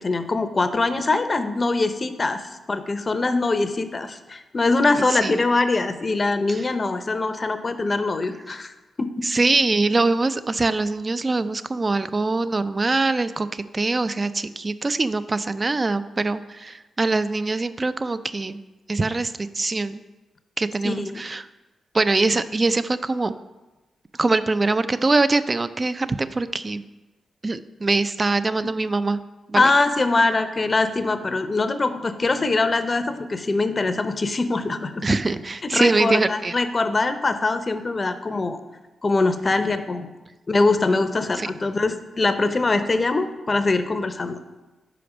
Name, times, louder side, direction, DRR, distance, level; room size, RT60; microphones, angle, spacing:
voice 1, 0.0-2.4 2.7-8.7 9.0-9.1 20.8-21.2 29.5-35.2 35.6-38.6 39.0-40.1 40.5-44.4, left 3 dB, 40° left, 10 dB, 0.6 m, -23 dB
voice 2, 5.1-5.4 9.2-18.6 18.9-20.0 20.6-21.5 21.9-23.3 24.2-26.8 27.4-29.2 29.5-29.7 35.0-36.5 41.4-41.5, right 3 dB, 35° right, 13 dB, 0.4 m, -23 dB
5.0 x 5.0 x 6.0 m, 1.1 s
supercardioid pair, 40°, 0 cm